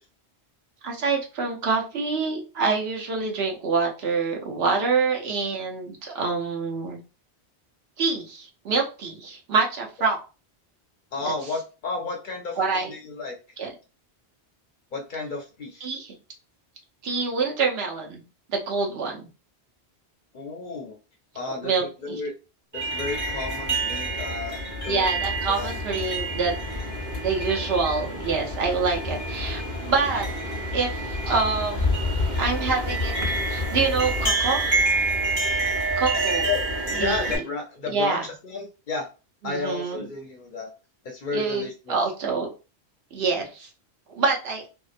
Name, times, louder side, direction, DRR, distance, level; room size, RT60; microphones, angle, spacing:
voice 1, 0.8-7.0 8.0-10.2 11.2-11.3 12.6-12.9 13.6-13.7 15.8-16.1 17.0-18.2 18.5-19.3 21.5-22.2 24.9-26.5 27.2-30.3 30.7-31.9 32.4-33.1 33.5-34.8 36.0-36.5 37.0-37.3 37.9-38.2 39.4-40.1 41.3-42.5 43.1-43.7 44.2-44.7, right 4 dB, 70° right, 0 dB, 0.9 m, -26 dB
voice 2, 11.1-13.4 14.9-15.9 20.3-21.0 21.3-22.3 22.7-24.6 24.8-25.7 36.4-39.1 39.4-40.7 41.0-41.9, left 3 dB, 60° left, 2 dB, 0.6 m, -32 dB
sound 1, 22.7-37.4, right 1 dB, 20° right, 0.9 m, -27 dB
2.7 x 2.1 x 2.4 m, 0.32 s
omnidirectional pair, 1.1 m